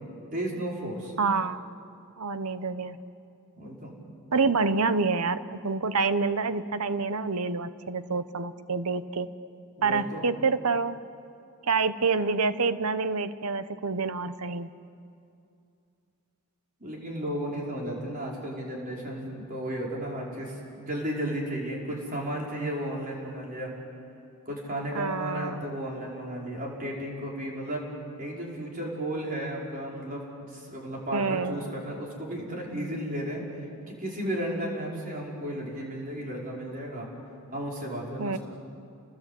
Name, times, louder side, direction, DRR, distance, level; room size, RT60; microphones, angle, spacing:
voice 1, 0.3-1.1 3.6-3.9 9.8-10.3 16.8-23.7 24.5-27.8 28.2-33.4 33.9-37.1 37.5-38.4, right 1 dB, 40° right, -2 dB, 5.3 m, -34 dB
voice 2, 1.2-1.6 2.2-3.0 4.3-9.3 9.8-11.0 11.7-14.7 24.9-25.6 31.1-31.6 38.2-38.4, right 4 dB, 85° right, 12 dB, 1.0 m, -27 dB
30.0 x 21.0 x 8.3 m, 2.5 s
head